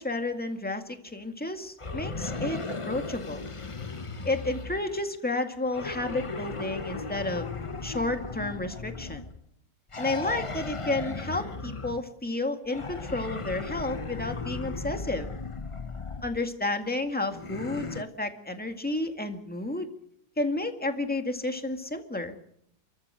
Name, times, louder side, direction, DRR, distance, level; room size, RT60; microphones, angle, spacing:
voice 1, 0.0-2.6 2.9-3.4 4.2-7.5 7.8-9.2 10.0-15.3 16.2-19.9 20.4-22.4, left 2 dB, 5° left, 6 dB, 1.9 m, -31 dB
sound 1, 1.8-5.1 5.7-9.4 9.9-12.1 12.7-16.4 17.3-18.0, left 3 dB, 30° left, 0.5 m, -36 dB
29.0 x 14.0 x 7.8 m, 0.71 s
omnidirectional pair, 2.0 m